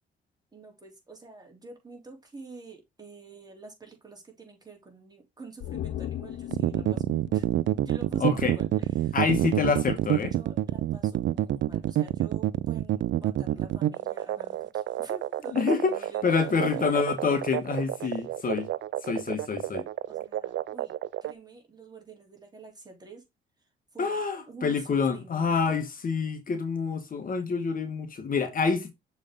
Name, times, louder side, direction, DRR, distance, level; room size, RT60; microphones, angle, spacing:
voice 1, 0.5-7.5 7.8-9.2 10.2-16.9 18.0-18.2 20.1-20.9 21.2-23.2 23.9-24.2 24.5-25.8, right 3 dB, 20° right, 3.6 m, -47 dB
sound 1, 5.6-9.0 9.3-9.4, left 12 dB, 65° left, 0.5 m, -39 dB
sound 2, 6.5-21.3, right 13 dB, 70° right, 0.5 m, -28 dB
voice 2, 8.2-8.6 9.1-10.3 15.5-15.9 16.2-18.7 19.0-19.9 24.0-28.9, left 5 dB, 45° left, 1.6 m, -27 dB
6.7 x 5.1 x 3.8 m
cardioid pair, 90°, 20 cm